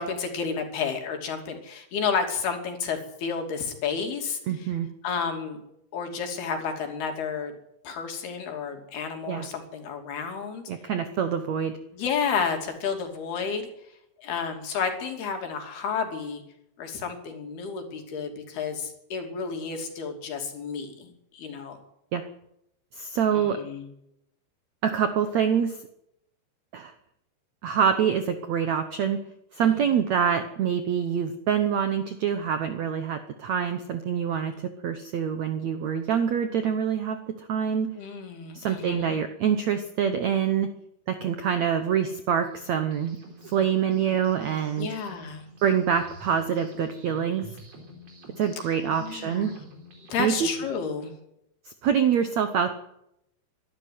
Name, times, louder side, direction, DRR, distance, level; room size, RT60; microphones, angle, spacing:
voice 1, 0.0-4.4 5.0-5.6 5.9-7.5 7.8-10.6 11.9-13.7 14.2-16.4 16.8-21.8 23.3-23.9 29.6-29.7 34.4-34.6 38.0-39.2 44.8-45.5 49.0-49.5 50.1-51.1, left 6 dB, 75° left, 4 dB, 4.8 m, -31 dB
voice 2, 4.5-4.9 9.3-9.5 10.7-11.7 22.1-22.2 22.9-23.6 24.8-25.8 26.7-26.9 27.6-29.2 29.5-37.9 38.5-40.7 41.1-43.2 43.4-44.9 45.6-47.4 48.4-49.5 50.2-50.5 51.8-52.8, right 8 dB, 70° right, 8 dB, 1.7 m, -25 dB
sound 1, 42.4-50.7, equal, 40° right, 4.9 m, -47 dB
23.5 x 12.5 x 9.5 m, 0.82 s
omnidirectional pair, 4.6 m